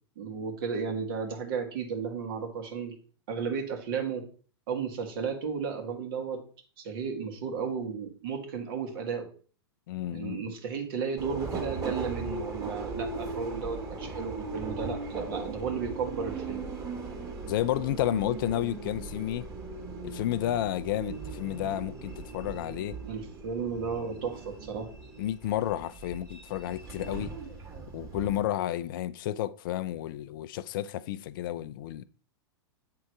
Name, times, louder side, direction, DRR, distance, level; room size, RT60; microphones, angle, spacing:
voice 1, 0.2-2.9 3.3-4.3 4.7-6.4 6.8-9.3 10.1-16.7 23.0-24.9, right 6 dB, 60° right, 2.1 m, -34 dB
voice 2, 9.9-10.4 11.5-11.6 17.5-19.5 20.0-23.0 25.2-27.3 27.9-32.0, left 13 dB, 55° left, 0.5 m, -31 dB
Subway metro underground, 11.2-28.4, right 3 dB, 20° right, 2.1 m, -39 dB
8.4 x 3.8 x 4.7 m
hypercardioid pair, 105°, 14 cm